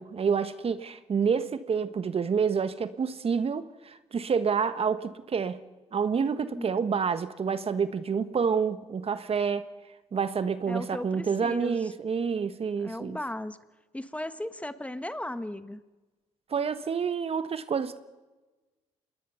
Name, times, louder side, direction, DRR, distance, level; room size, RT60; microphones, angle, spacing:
voice 1, 0.0-5.6 5.9-9.7 10.1-13.2 16.5-18.0, right 6 dB, 45° right, 1.4 m, -28 dB
voice 2, 10.7-11.9 12.8-13.6 13.9-15.8, left 1 dB, 10° left, 1.3 m, -36 dB
27.0 x 20.5 x 5.8 m
supercardioid pair, 60°, 14 cm